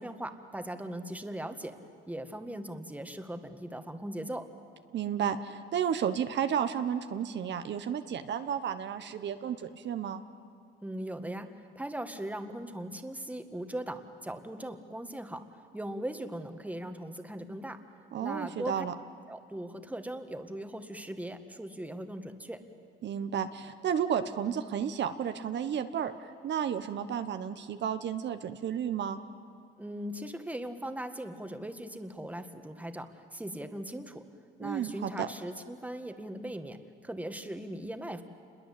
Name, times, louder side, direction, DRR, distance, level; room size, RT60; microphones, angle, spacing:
voice 1, 0.0-1.8 2.1-4.5 10.8-17.8 18.2-18.9 19.3-22.6 29.8-34.3 34.6-38.2, right 1 dB, 5° right, 7 dB, 1.8 m, -39 dB
voice 2, 4.9-10.2 18.1-18.9 23.0-29.2 34.6-35.3, right 8 dB, 65° right, 9 dB, 1.1 m, -32 dB
28.0 x 22.0 x 8.5 m, 2.3 s
cardioid pair, 90°, 20 cm